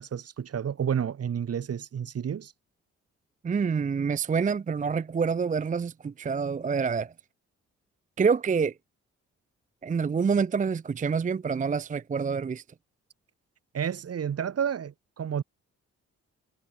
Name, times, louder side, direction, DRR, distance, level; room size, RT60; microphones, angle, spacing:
voice 1, 0.0-2.5 13.7-15.4, right 8 dB, 50° right, 1.2 m, -30 dB
voice 2, 3.4-7.1 8.2-8.7 9.8-12.6, right 5 dB, 25° right, 0.5 m, -27 dB
supercardioid pair, 50°, 32 cm